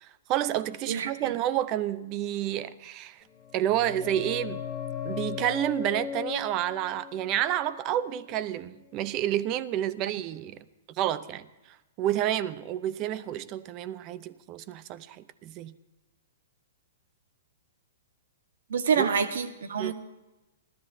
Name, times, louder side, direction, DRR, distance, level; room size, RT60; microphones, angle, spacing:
voice 1, 0.0-3.2 3.5-4.6 5.0-10.6 11.0-11.5 12.0-15.7 19.0-19.1 19.8-19.9, right 12 dB, 30° right, 0.6 m, -29 dB
voice 2, 0.9-1.3 18.7-19.9, right 6 dB, 75° right, 1.3 m, -27 dB
sound 1, 3.3-8.7 9.0-9.1, left 8 dB, 25° left, 2.2 m, -38 dB
28.0 x 12.5 x 2.7 m
hypercardioid pair, 150°, 0 cm